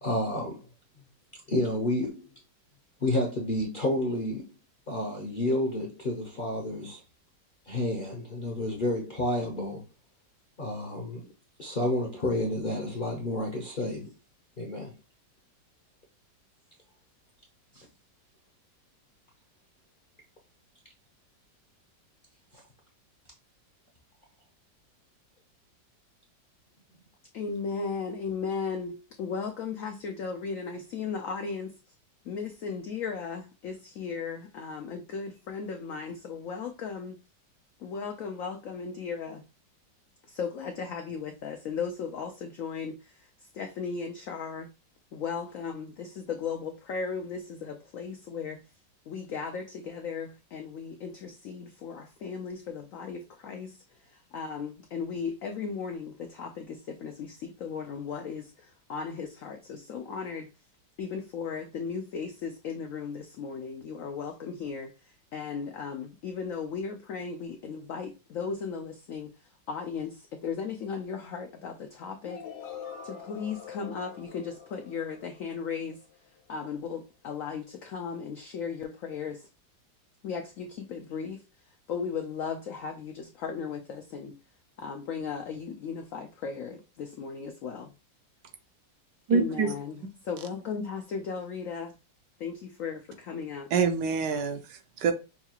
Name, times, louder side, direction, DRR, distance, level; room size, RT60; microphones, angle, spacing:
voice 1, 0.0-0.6 1.5-2.3 3.0-4.5 4.9-7.0 7.7-9.8 10.6-11.2 11.6-14.1 14.6-14.9 17.7-17.9 22.5-22.6, left 1 dB, 50° left, 0.6 m, -30 dB
voice 2, 27.3-31.7 32.3-37.2 37.8-39.4 40.3-43.3 43.5-44.7 45.1-48.6 49.1-53.8 54.0-60.5 61.0-69.3 69.7-72.4 73.0-76.0 76.5-79.5 80.2-81.4 81.9-84.3 84.8-87.9 89.3-92.0 92.4-93.7, left 5 dB, 90° left, 0.7 m, -36 dB
sound 1, 72.2-76.2, left 7 dB, 70° left, 1.2 m, -45 dB
voice 3, 89.3-89.7 93.7-95.1, right 5 dB, 75° right, 1.2 m, -26 dB
5.6 x 2.3 x 2.8 m
omnidirectional pair, 2.0 m